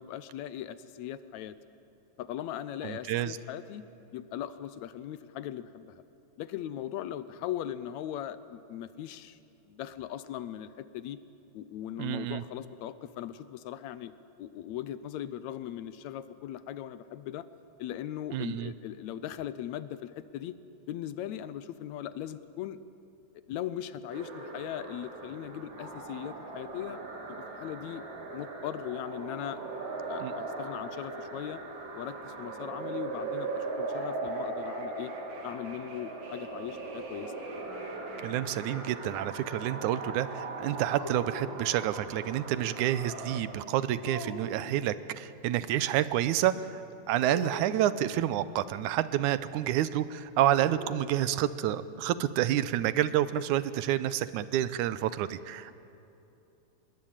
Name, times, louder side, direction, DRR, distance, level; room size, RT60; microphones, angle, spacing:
voice 1, 0.0-1.6 2.2-3.8 4.1-6.0 6.4-9.4 9.7-11.2 11.5-14.1 14.4-17.5 17.8-20.6 20.9-22.8 23.5-27.0 27.3-28.0 28.3-29.6 30.1-31.6 31.9-35.1 35.4-37.3, left 11 dB, 75° left, 14 dB, 1.9 m, -39 dB
voice 2, 2.8-3.4 12.0-12.4 18.3-18.7 30.2-30.3 38.2-46.8 47.1-55.7, right 12 dB, 80° right, 15 dB, 2.2 m, -29 dB
sound 1, 24.1-43.4, right 3 dB, 50° right, 3.5 m, -39 dB
sound 2, 36.6-38.5 41.0-42.2 44.0-44.8 47.2-48.3 50.4-51.6, left 1 dB, 5° left, 2.6 m, -43 dB
25.5 x 21.5 x 8.9 m, 2.9 s
omnidirectional pair, 3.5 m